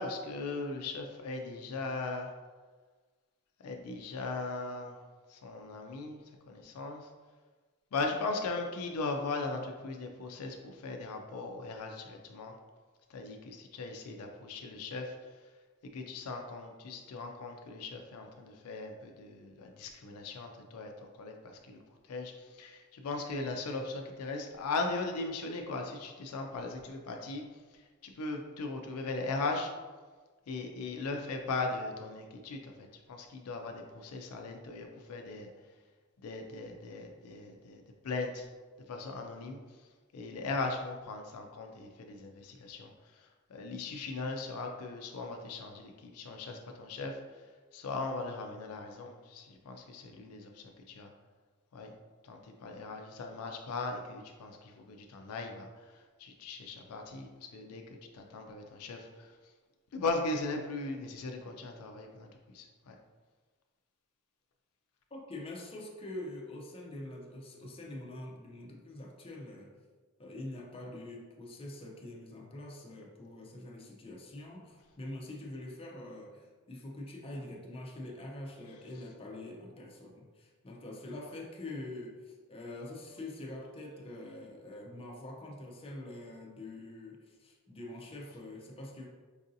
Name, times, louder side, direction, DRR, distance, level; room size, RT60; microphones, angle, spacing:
voice 1, 0.0-2.3 3.6-5.0 5.3-6.2 6.5-7.1 7.9-12.5 13.1-15.1 15.8-21.8 22.1-27.4 28.0-29.7 30.5-35.5 36.2-38.5 38.9-39.6 40.1-42.9 43.5-47.2 47.7-51.1 51.7-51.9 52.2-55.7 55.9-57.8 58.1-59.3 59.9-62.9, left 3 dB, 75° left, 3 dB, 0.4 m, -38 dB
voice 2, 65.1-69.7 70.2-89.1, left 1 dB, 25° left, -1 dB, 0.5 m, -45 dB
4.6 x 2.6 x 2.6 m, 1.4 s
head